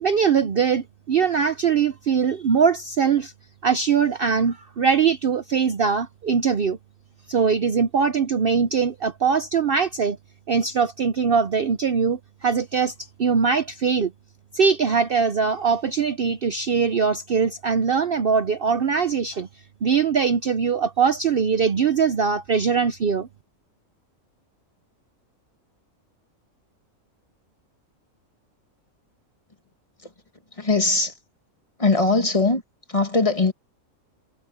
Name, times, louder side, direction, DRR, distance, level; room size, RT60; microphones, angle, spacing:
voice 1, 0.0-3.3 3.6-6.8 7.3-10.2 10.5-12.9 13.2-14.1 14.5-19.5 19.8-23.3, right 6 dB, 50° right, 0.8 m, -21 dB
voice 2, 30.5-31.2 31.8-32.6 32.9-33.5, left 3 dB, 25° left, 1.7 m, -21 dB
omnidirectional pair, 1.4 m